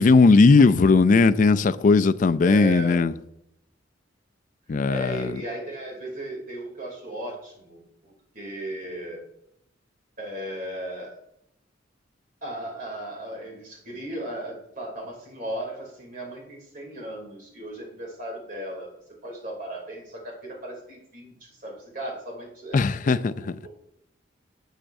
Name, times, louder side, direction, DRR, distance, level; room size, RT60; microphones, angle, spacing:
voice 1, 0.0-3.1 4.7-5.3 22.7-23.3, left 4 dB, 45° left, 0.4 m, -18 dB
voice 2, 2.4-3.0 4.7-9.2 10.2-11.2 12.4-18.9 19.2-23.7, right 1 dB, 50° right, 2.8 m, -36 dB
11.5 x 7.4 x 2.6 m
head